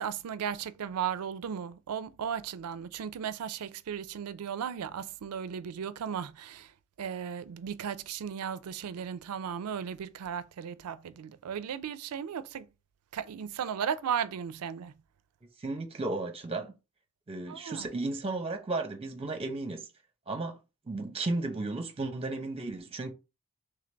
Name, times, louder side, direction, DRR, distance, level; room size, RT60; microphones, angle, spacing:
voice 1, 0.0-6.7 7.0-12.7 13.1-14.9 17.5-17.9, right 8 dB, 75° right, 0.4 m, -36 dB
voice 2, 15.6-16.7 17.3-19.9 20.3-20.6 20.9-23.1, right 2 dB, 25° right, 0.8 m, -34 dB
3.8 x 3.3 x 3.3 m
head